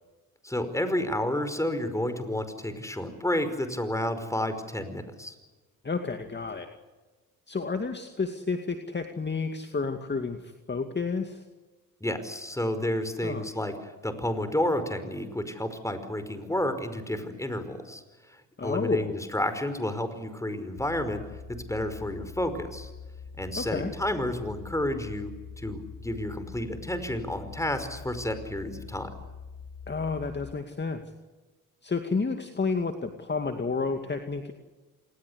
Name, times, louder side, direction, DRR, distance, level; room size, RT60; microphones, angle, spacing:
voice 1, 0.4-5.3 12.0-18.0 18.3-18.4 18.6-21.2 21.7-22.9 23.4-25.3 25.6-29.1, left 1 dB, 10° left, 10 dB, 5.2 m, -30 dB
voice 2, 5.8-6.7 7.5-11.4 13.2-13.4 18.6-19.1 23.6-23.9 29.9-31.0 31.8-34.5, left 4 dB, 30° left, 6 dB, 2.4 m, -31 dB
sound 1, 20.7-30.5, left 6 dB, 85° left, 4.7 m, -44 dB
27.0 x 20.5 x 8.3 m, 1.2 s
supercardioid pair, 70°, 36 cm